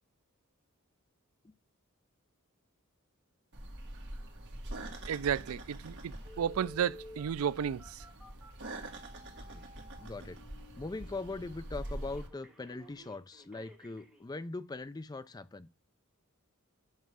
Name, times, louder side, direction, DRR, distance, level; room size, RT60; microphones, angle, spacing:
sound 1, 3.5-12.3, right 1 dB, 55° right, 1.8 m, -45 dB
voice 1, 5.1-7.8, right 8 dB, 75° right, 0.4 m, -33 dB
Telephone, 6.2-14.2 14.8-14.9, equal, 5° right, 2.8 m, -54 dB
voice 2, 10.0-10.4 10.8-15.7, left 3 dB, 20° left, 0.4 m, -41 dB
7.3 x 5.6 x 6.2 m
head